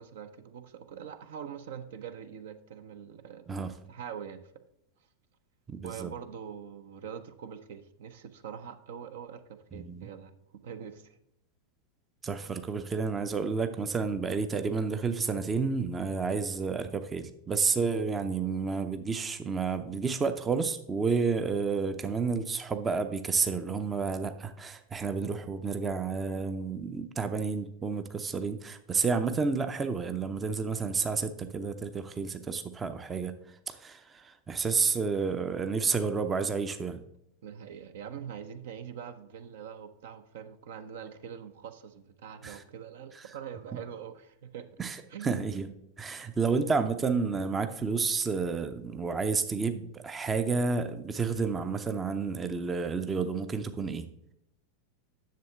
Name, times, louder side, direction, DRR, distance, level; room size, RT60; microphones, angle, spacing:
voice 1, 0.0-3.6 3.9-4.5 5.8-11.2 26.3-26.5 37.4-44.7 45.1-45.4, right 8 dB, 55° right, 10 dB, 0.7 m, -43 dB
voice 2, 5.7-6.1 9.7-10.0 12.2-33.3 33.7-37.0 42.4-42.6 44.8-54.1, right 5 dB, 15° right, 9 dB, 0.6 m, -30 dB
10.5 x 7.1 x 3.5 m, 0.79 s
figure-of-eight pair, 90°, 0 cm